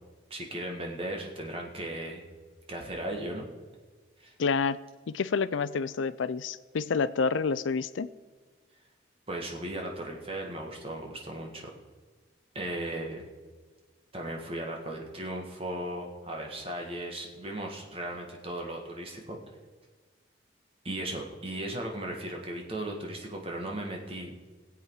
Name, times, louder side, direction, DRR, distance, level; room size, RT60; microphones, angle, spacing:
voice 1, 0.3-2.2 2.7-3.5 4.2-4.3 9.3-11.7 12.5-13.2 14.1-19.4 20.8-24.3, right 1 dB, 30° right, 1 dB, 1.8 m, -36 dB
voice 2, 4.4-4.8 5.1-8.1, left 5 dB, 90° left, 16 dB, 0.5 m, -28 dB
20.0 x 8.1 x 4.8 m, 1.4 s
head